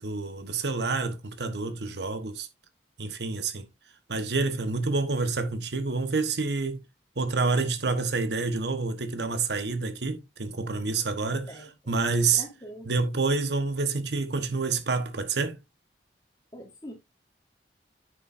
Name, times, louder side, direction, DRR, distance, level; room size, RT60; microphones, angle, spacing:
voice 1, 0.0-2.5 3.0-3.7 4.1-6.8 7.2-12.4 12.9-15.6, right 4 dB, 70° right, 1.2 m, -28 dB
voice 2, 11.2-11.9 12.3-12.9 16.5-16.9, equal, 20° left, 3.5 m, -44 dB
9.1 x 6.8 x 2.6 m
head